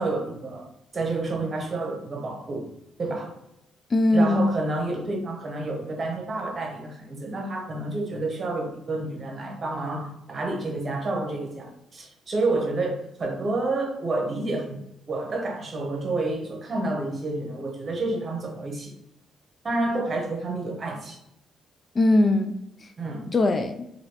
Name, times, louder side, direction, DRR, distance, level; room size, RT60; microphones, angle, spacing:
voice 1, 0.0-2.7 3.0-3.4 4.1-14.8 15.1-18.9 19.6-21.2 23.0-23.3, right 2 dB, 40° right, 0.9 m, -29 dB
voice 2, 3.9-4.5 21.9-22.9 23.3-23.8, left 2 dB, 35° left, 0.3 m, -21 dB
3.0 x 2.7 x 2.9 m
cardioid pair, 90°, 0 cm